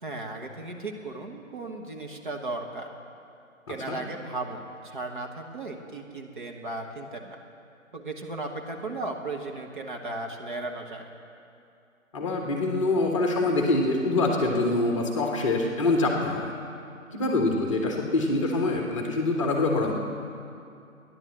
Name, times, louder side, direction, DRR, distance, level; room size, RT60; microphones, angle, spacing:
voice 1, 0.0-2.9 3.7-7.4 7.9-11.1, right 2 dB, 35° right, 2 dB, 1.3 m, -36 dB
voice 2, 3.7-4.0 12.1-16.5 17.1-19.9, left 2 dB, 20° left, 1 dB, 1.2 m, -25 dB
13.5 x 10.5 x 7.5 m, 2.6 s
figure-of-eight pair, 155°, 41 cm